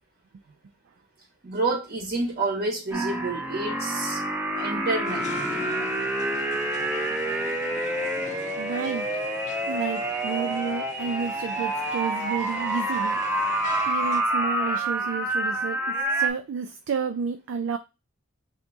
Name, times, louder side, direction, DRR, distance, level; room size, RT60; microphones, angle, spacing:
voice 1, 1.4-4.2 4.6-5.3, right 3 dB, 45° right, 1.0 m, -28 dB
sound 1, 2.9-16.3, right 1 dB, 10° right, 0.5 m, -28 dB
sound 2, 5.0-14.2, left 2 dB, 35° left, 0.6 m, -42 dB
voice 2, 8.6-9.1 9.7-13.2 13.9-17.8, right 6 dB, 75° right, 0.4 m, -31 dB
3.4 x 2.7 x 3.9 m
head